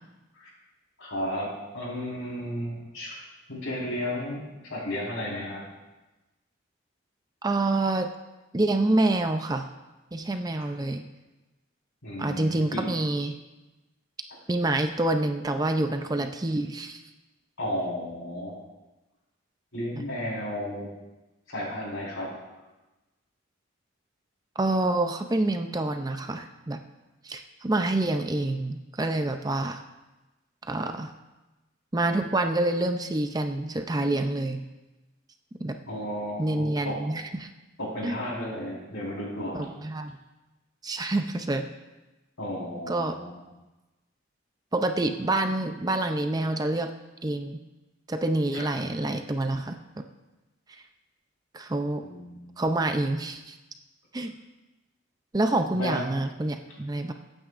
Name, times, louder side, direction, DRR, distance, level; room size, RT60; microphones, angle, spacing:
voice 1, 1.0-3.2 3.5-4.4 4.7-5.7 10.6-10.7 12.0-12.8 17.6-18.6 19.7-20.9 21.5-22.3 35.9-37.0 37.8-39.7 42.4-43.3 48.5-48.7 52.0-52.4 55.7-56.0, equal, 80° left, -4 dB, 4.3 m, -33 dB
voice 2, 7.4-8.1 8.5-9.6 10.1-11.0 12.2-13.4 14.5-17.0 24.6-26.8 27.2-29.8 30.6-31.1 31.9-34.6 35.6-35.8 36.4-37.5 38.0-38.2 39.5-40.1 40.8-41.7 42.9-43.2 44.7-46.9 47.2-47.6 48.1-49.8 51.5-52.0 52.6-53.6 54.1-54.3 55.3-57.1, right 2 dB, 20° right, 6 dB, 0.5 m, -27 dB
22.0 x 9.0 x 2.5 m, 1.1 s
head